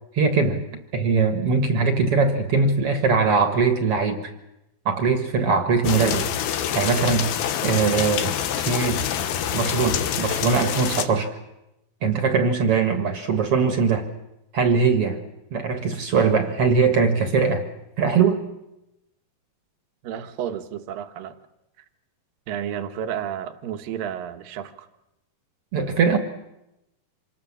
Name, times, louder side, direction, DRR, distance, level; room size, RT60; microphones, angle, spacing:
voice 1, 0.1-0.6 0.9-4.2 4.9-6.2 6.7-7.3 7.6-8.3 8.7-9.0 9.5-11.3 12.0-14.1 14.5-15.2 15.5-17.6 18.0-18.4 25.7-26.2, right 5 dB, 50° right, 7 dB, 2.0 m, -21 dB
sound 1, 5.8-11.1, left 9 dB, 85° left, 3.1 m, -26 dB
voice 2, 20.0-21.4 22.5-24.9, right 9 dB, 75° right, 8 dB, 2.8 m, -31 dB
26.5 x 20.0 x 7.3 m, 0.91 s
omnidirectional pair, 4.3 m